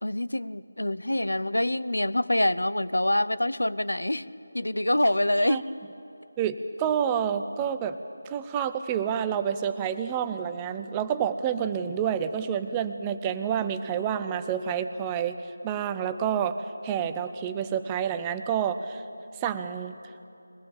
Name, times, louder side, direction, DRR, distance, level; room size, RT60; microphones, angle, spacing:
voice 1, 0.0-4.2 4.5-5.6, left 1 dB, 90° left, 16 dB, 0.6 m, -25 dB
voice 2, 6.4-8.0 8.2-15.4 15.6-16.6 16.8-19.0 19.4-19.9, right 8 dB, 15° right, 10 dB, 0.6 m, -28 dB
23.0 x 18.5 x 7.4 m, 2.8 s
figure-of-eight pair, 165°, 0 cm